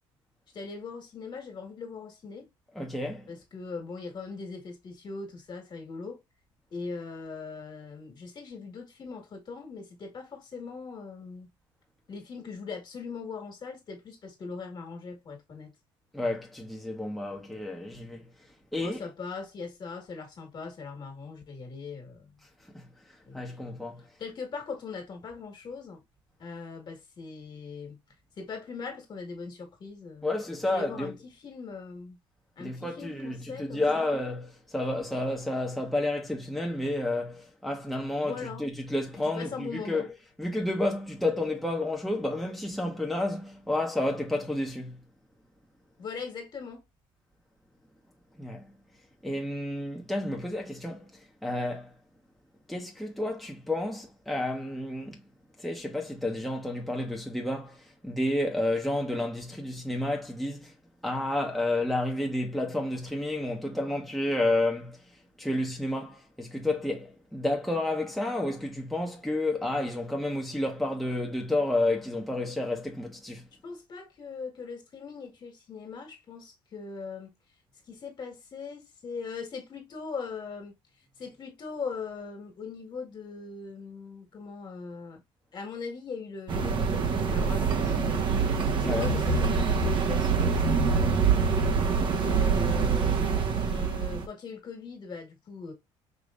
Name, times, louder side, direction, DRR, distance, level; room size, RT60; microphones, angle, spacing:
voice 1, 0.5-2.5 3.3-6.2 6.7-11.5 12.1-15.7 18.8-22.3 23.3-23.7 24.2-26.0 26.4-28.0 28.4-30.3 30.7-32.2 32.6-34.1 38.2-38.7 39.2-40.1 46.0-46.8 73.6-77.3 77.9-80.7 81.2-85.2 85.5-88.2 88.7-91.5 92.2-93.2 93.6-95.7, left 5 dB, 45° left, 1.8 m, -40 dB
voice 2, 2.7-3.3 16.1-18.3 18.7-19.0 22.7-22.9 23.3-24.0 30.2-31.1 32.6-40.1 40.4-45.0 48.4-48.7 49.2-51.9 52.7-55.2 55.6-60.7 61.0-65.0 65.4-73.5 88.8-89.1, left 1 dB, ahead, 1.0 m, -30 dB
sound 1, 86.5-94.3, right 5 dB, 50° right, 1.0 m, -25 dB
5.1 x 2.9 x 2.5 m
supercardioid pair, 90°, 11 cm